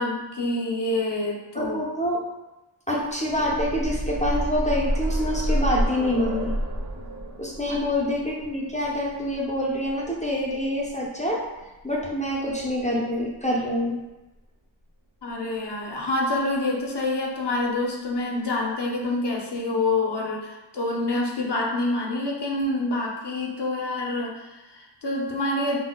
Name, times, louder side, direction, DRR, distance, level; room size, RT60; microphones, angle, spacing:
voice 1, 0.0-1.8 7.7-7.8 15.2-25.8, left 2 dB, 55° left, -1 dB, 0.7 m, -27 dB
voice 2, 1.5-2.2 2.9-6.5 7.4-11.4 11.8-14.0, left 1 dB, 15° left, -4 dB, 0.5 m, -26 dB
sound 1, 3.1-10.9 12.0-12.1 12.5-12.6, equal, 35° right, 0.5 m, -29 dB
4.0 x 2.1 x 2.2 m, 1.0 s
wide cardioid pair, 55°, 48 cm